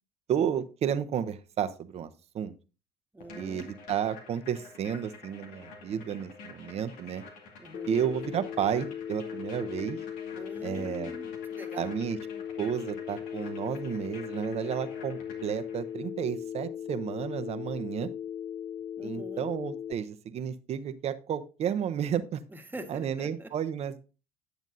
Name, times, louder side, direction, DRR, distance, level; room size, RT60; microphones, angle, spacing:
voice 1, 0.3-2.1 2.3-2.5 3.4-7.2 7.9-10.0 10.6-11.1 11.8-12.2 12.6-18.1 19.0-22.4 22.9-24.0, right 9 dB, 50° right, 11 dB, 0.8 m, -32 dB
voice 2, 3.1-3.7 7.6-8.0 10.3-12.0 19.0-19.5 22.5-23.5, right 2 dB, 15° right, 5 dB, 1.5 m, -44 dB
sound 1, 3.2-16.0, left 4 dB, 70° left, 2.1 m, -49 dB
Telephone, 7.7-19.9, left 9 dB, 45° left, 0.4 m, -38 dB
9.2 x 7.0 x 2.7 m, 0.33 s
hypercardioid pair, 75°, 14 cm